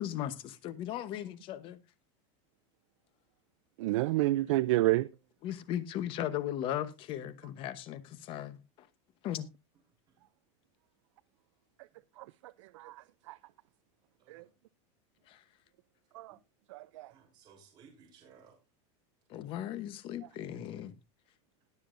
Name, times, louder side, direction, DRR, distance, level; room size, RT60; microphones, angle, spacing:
voice 1, 0.0-1.8 5.4-8.9 9.2-9.5 15.3-15.4 19.3-21.0, left 11 dB, 35° left, 1.0 m, -37 dB
voice 2, 3.8-5.1 12.2-12.3 12.7-13.4 14.3-14.4 16.1-16.3 16.7-17.1, right 17 dB, 70° right, 0.4 m, -30 dB
voice 3, 4.4-4.7 10.1-10.2 14.2-14.5 17.1-18.6 20.7-20.9, right 6 dB, 25° right, 3.5 m, -60 dB
20.5 x 6.9 x 2.6 m
supercardioid pair, 165°, 16 cm